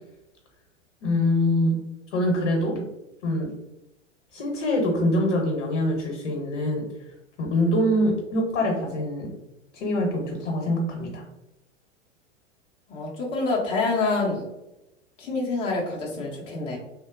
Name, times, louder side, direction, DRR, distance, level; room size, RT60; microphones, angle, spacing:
voice 1, 1.0-1.8 2.1-2.9 3.2-3.5 4.3-6.9 7.4-9.3 9.7-11.2, left 1 dB, 45° left, 1 dB, 0.8 m, -24 dB
voice 2, 12.9-14.5 15.2-16.8, left 3 dB, 15° left, -3 dB, 0.4 m, -26 dB
2.8 x 2.0 x 2.4 m, 0.92 s
figure-of-eight pair, 95°, 37 cm